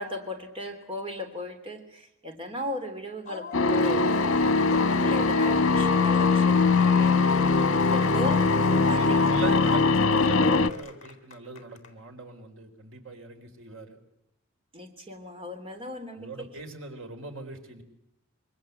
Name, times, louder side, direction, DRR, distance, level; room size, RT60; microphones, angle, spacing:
voice 1, 0.0-4.2 4.7-7.6 7.9-8.5 8.9-9.7 14.7-16.5, left 1 dB, 30° right, 5 dB, 3.4 m, -37 dB
Cheering / Applause / Crowd, 3.3-11.9, left 5 dB, 40° left, 3.5 m, -41 dB
sound 1, 3.5-10.7, left 4 dB, 75° left, 1.2 m, -21 dB
voice 2, 8.9-14.0 16.2-17.8, right 3 dB, 80° right, 6 dB, 3.9 m, -41 dB
26.0 x 24.0 x 7.9 m, 0.83 s
head